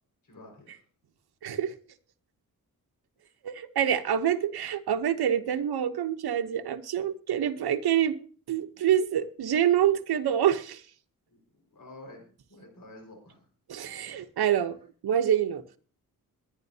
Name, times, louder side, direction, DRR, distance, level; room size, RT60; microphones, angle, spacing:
voice 1, 0.2-0.8 3.2-3.3 11.3-13.4, left 1 dB, 60° left, 5.0 m, -50 dB
voice 2, 1.4-1.7 3.4-8.2 8.5-10.8 13.7-14.8 15.0-15.6, right 9 dB, 85° right, 0.9 m, -26 dB
21.5 x 9.9 x 2.8 m
cardioid pair, 80°, 37 cm